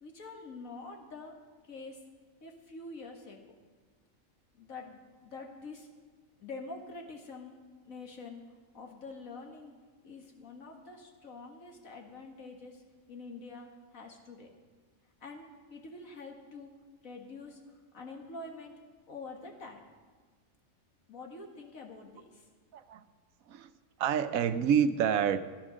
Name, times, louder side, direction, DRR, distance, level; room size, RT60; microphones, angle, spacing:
voice 1, 0.0-1.4 1.7-2.0 2.4-3.4 4.5-5.9 6.4-7.6 7.8-8.4 8.7-9.8 10.0-12.8 13.1-14.5 15.2-16.7 17.0-17.6 17.9-18.8 19.1-19.8 21.1-22.4, left 3 dB, 80° left, 1 dB, 2.2 m, -46 dB
voice 2, 22.7-23.0 23.5-23.7 24.0-25.4, right 8 dB, 85° right, 12 dB, 1.1 m, -27 dB
15.0 x 11.5 x 6.3 m, 1.5 s
omnidirectional pair, 1.4 m